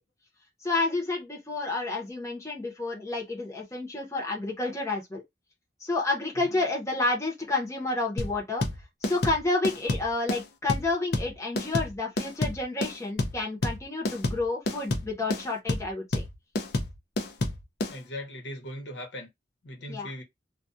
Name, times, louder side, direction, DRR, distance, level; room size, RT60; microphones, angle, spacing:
voice 1, 0.6-5.2 5.8-8.6 9.0-16.2 19.9-20.1, left 2 dB, 15° left, 0.8 m, -30 dB
sound 1, 8.2-17.9, left 2 dB, 60° left, 0.5 m, -29 dB
voice 2, 17.8-19.3 19.6-20.2, left 1 dB, 75° left, 1.0 m, -39 dB
2.3 x 2.3 x 2.6 m
head